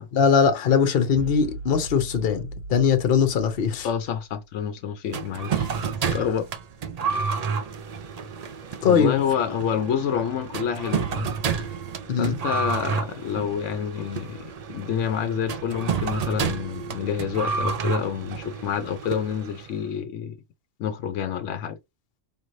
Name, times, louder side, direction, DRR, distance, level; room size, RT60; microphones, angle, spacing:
voice 1, 0.1-3.9 8.8-9.2 12.1-12.4, left 6 dB, 55° left, 0.9 m, -21 dB
sound 1, 1.1-4.6, right 2 dB, 45° right, 1.2 m, -39 dB
voice 2, 3.8-5.7 6.1-6.5 8.8-11.3 12.2-20.4 20.8-21.8, left 8 dB, 80° left, 1.0 m, -28 dB
sound 2, 5.1-19.8, right 6 dB, 80° right, 0.3 m, -30 dB
5.0 x 3.1 x 2.6 m
omnidirectional pair, 1.3 m